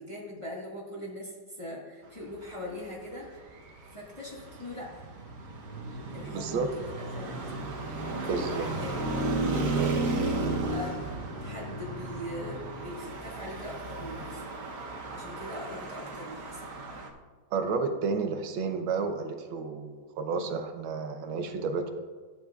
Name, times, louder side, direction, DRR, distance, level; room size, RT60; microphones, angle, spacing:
voice 1, 0.0-3.3 3.9-5.0 6.1-7.4 7.9-9.1 10.0-11.0 11.4-14.4 15.1-16.6, left 1 dB, 20° left, -4 dB, 1.2 m, -41 dB
Traffic noise roadway noise, 3.4-17.1, right 2 dB, 55° right, 1.2 m, -34 dB
voice 2, 6.3-6.7 8.3-8.7 9.8-10.1 17.5-21.9, right 4 dB, 80° right, 6 dB, 1.6 m, -31 dB
12.5 x 8.8 x 2.4 m, 1.4 s
omnidirectional pair, 2.2 m